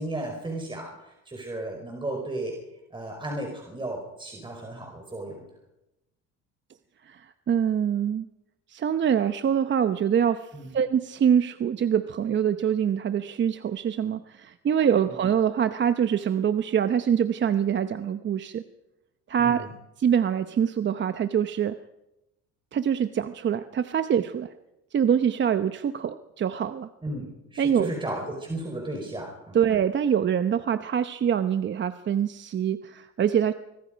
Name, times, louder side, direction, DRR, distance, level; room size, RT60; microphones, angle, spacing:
voice 1, 0.0-2.5 2.9-5.4 10.5-10.7 19.4-19.7 27.0-29.6, right 1 dB, 15° right, 1 dB, 5.1 m, -34 dB
voice 2, 7.0-8.3 8.7-18.6 19.3-19.7 20.0-21.8 22.7-24.5 24.9-26.9 27.6-27.9 29.5-33.5, right 8 dB, 35° right, 10 dB, 0.9 m, -24 dB
25.0 x 23.0 x 5.2 m, 0.93 s
cardioid pair, 110°, 31 cm